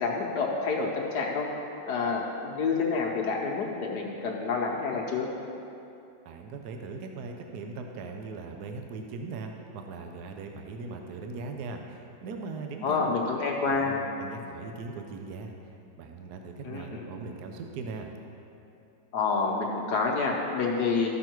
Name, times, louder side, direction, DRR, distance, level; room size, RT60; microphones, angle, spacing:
voice 1, 0.0-1.5 1.9-5.3 12.8-13.9 16.6-17.1 19.1-21.1, left 4 dB, 65° left, -1 dB, 1.4 m, -28 dB
voice 2, 6.2-13.2 13.6-15.5 15.9-18.1, right 4 dB, 65° right, 3 dB, 1.1 m, -39 dB
13.5 x 6.2 x 4.5 m, 2.8 s
omnidirectional pair, 2.1 m